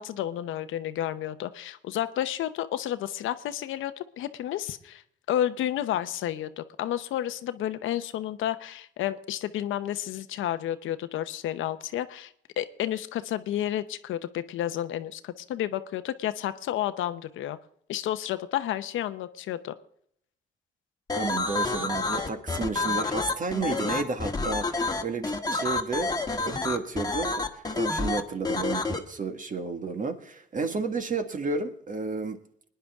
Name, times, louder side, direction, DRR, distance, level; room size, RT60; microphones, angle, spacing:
voice 1, 0.0-5.0 5.3-17.6 17.9-19.7, left 12 dB, 80° left, 11 dB, 0.8 m, -31 dB
sound 1, 21.1-29.0, left 3 dB, 20° left, 1.5 m, -28 dB
voice 2, 21.2-32.4, right 4 dB, 40° right, 7 dB, 1.7 m, -32 dB
21.0 x 10.0 x 3.6 m, 0.67 s
cardioid pair, 90°, 20 cm